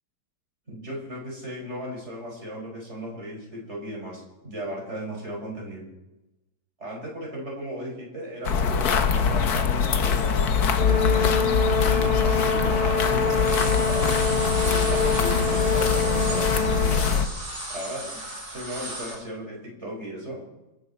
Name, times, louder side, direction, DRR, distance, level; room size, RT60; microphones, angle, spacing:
voice 1, 0.7-5.9 6.8-11.4 11.8-14.2 14.6-17.3 17.7-20.4, equal, 40° right, -3 dB, 5.9 m, -36 dB
sound 1, 8.4-17.3, left 6 dB, 65° left, 1.6 m, -23 dB
Brass instrument, 10.7-17.1, left 4 dB, 25° left, 1.0 m, -26 dB
sound 2, 13.1-19.2, right 1 dB, 65° right, 5.2 m, -35 dB
27.0 x 11.0 x 4.3 m, 1.0 s
omnidirectional pair, 1.9 m